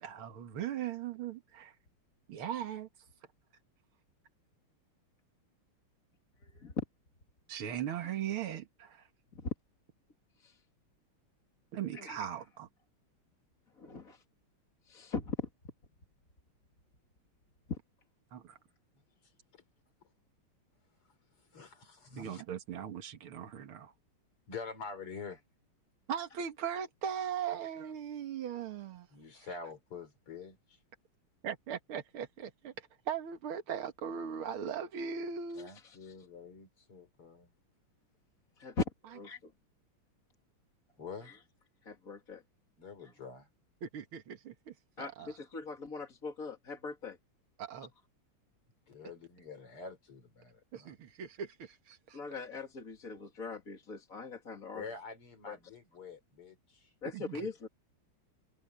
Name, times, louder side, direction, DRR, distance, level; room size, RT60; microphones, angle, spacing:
voice 1, 0.0-1.7 2.3-2.9 7.5-9.0 11.7-12.7 18.3-18.6 22.2-23.9 26.1-29.1 31.4-35.7 43.8-45.3 47.6-47.9 50.7-52.2 57.1-57.5, right 8 dB, 70° right, 2.5 m, -39 dB
voice 2, 13.8-14.2 14.9-15.5 17.7-17.8 35.8-36.1 38.6-39.5 41.2-41.4 41.8-42.4 43.0-43.1 45.0-47.2 52.1-54.8 55.5-55.6 57.0-57.7, left 4 dB, 40° left, 2.8 m, -40 dB
voice 3, 21.5-22.4 24.5-25.4 29.1-30.8 35.6-37.5 41.0-41.3 42.8-43.5 48.9-50.9 54.7-56.9, left 4 dB, 85° left, 4.9 m, -46 dB
omnidirectional pair, 2.4 m